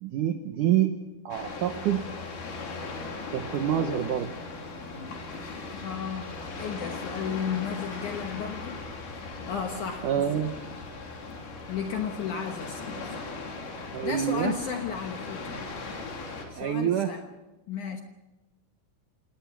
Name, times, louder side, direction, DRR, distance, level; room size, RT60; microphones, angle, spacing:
voice 1, 0.0-2.1 3.3-4.3 10.0-10.5 13.9-14.6 16.6-17.2, right 10 dB, 80° right, 6 dB, 1.8 m, -27 dB
sound 1, 1.3-16.5, left 3 dB, 60° left, 5.2 m, -38 dB
voice 2, 5.7-6.3 6.6-8.8 9.4-10.1 11.7-13.3 14.0-15.6 16.5-17.2 17.7-18.0, left 7 dB, 75° left, 4 dB, 1.8 m, -34 dB
26.5 x 19.0 x 6.1 m, 1.1 s
omnidirectional pair, 5.2 m